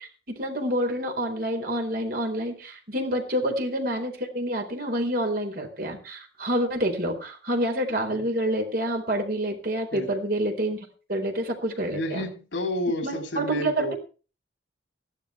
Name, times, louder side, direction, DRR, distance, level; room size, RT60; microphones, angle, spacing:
voice 1, 0.4-12.2 13.0-13.9, right 1 dB, 55° right, 4 dB, 4.4 m, -28 dB
voice 2, 11.9-13.9, equal, 80° left, 5 dB, 3.0 m, -31 dB
15.5 x 12.5 x 4.6 m, 0.37 s
head